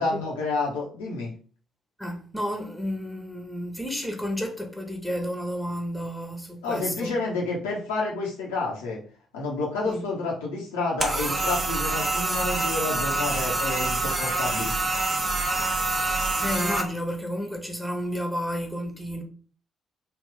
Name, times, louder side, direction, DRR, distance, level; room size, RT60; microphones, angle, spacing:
voice 1, 0.0-1.3 6.6-9.0 9.3-14.7, left 3 dB, 75° left, 0.8 m, -29 dB
voice 2, 2.0-7.2 9.8-10.1 16.4-19.2, equal, 5° left, 1.0 m, -31 dB
sound 1, 11.0-16.8, right 2 dB, 30° right, 0.9 m, -26 dB
3.5 x 2.4 x 3.5 m
figure-of-eight pair, 45°, 0 cm